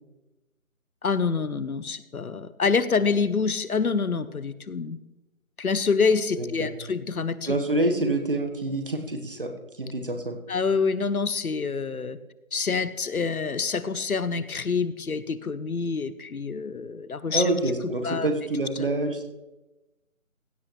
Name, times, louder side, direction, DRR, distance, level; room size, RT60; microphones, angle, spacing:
voice 1, 1.0-5.0 5.6-7.6 10.5-12.2 12.5-17.4 18.0-18.3 18.8-18.9, left 5 dB, 80° left, 15 dB, 0.9 m, -26 dB
voice 2, 6.4-6.7 7.5-9.5 9.8-10.4 17.3-19.3, right 2 dB, 40° right, 5 dB, 1.3 m, -26 dB
16.0 x 8.7 x 3.2 m, 1.0 s
figure-of-eight pair, 170°, 43 cm